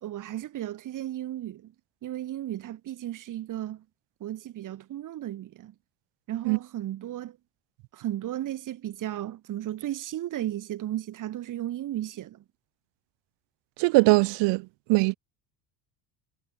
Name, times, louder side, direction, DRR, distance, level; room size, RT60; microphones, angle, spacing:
voice 1, 0.0-1.7 2.0-3.8 4.2-5.7 6.3-7.4 7.9-12.4, right 13 dB, 40° right, 2.8 m, -34 dB
voice 2, 13.8-14.6 14.9-15.2, right 25 dB, 65° right, 1.3 m, -20 dB
cardioid pair, 155°, 46 cm